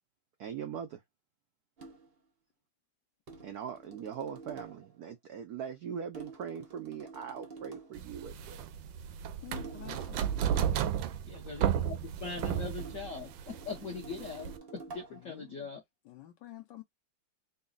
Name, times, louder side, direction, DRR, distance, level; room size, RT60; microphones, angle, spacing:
voice 1, 0.4-1.0 3.4-8.7, right 8 dB, 90° right, 0.8 m, -41 dB
sound 1, 1.8-2.2 3.3-4.9 6.1-8.0 9.6-11.0 12.8-15.3, right 4 dB, 50° right, 0.7 m, -49 dB
sound 2, 8.0-14.6, right 9 dB, 75° right, 1.2 m, -33 dB
voice 2, 9.4-10.3 15.1-15.7 16.1-16.8, left 14 dB, 75° left, 1.0 m, -48 dB
voice 3, 11.3-15.8, left 5 dB, 50° left, 1.0 m, -41 dB
4.0 x 2.2 x 3.8 m
omnidirectional pair, 2.4 m